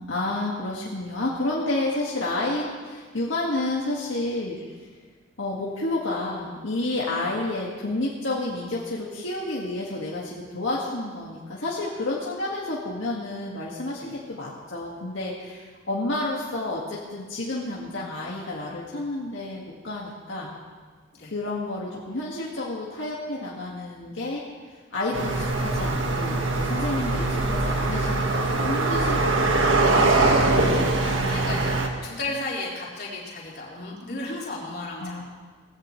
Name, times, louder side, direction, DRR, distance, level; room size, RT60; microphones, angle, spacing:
voice 1, 0.0-4.6 5.4-20.5 21.3-24.4 24.7-29.9 31.1-31.8 35.0-35.2, left 2 dB, 80° left, -5 dB, 2.0 m, -30 dB
sound 1, 25.1-31.9, right 2 dB, 85° right, 1.7 m, -22 dB
voice 2, 30.8-35.2, left 2 dB, 55° left, -5 dB, 3.8 m, -34 dB
20.0 x 16.0 x 3.3 m, 1.5 s
head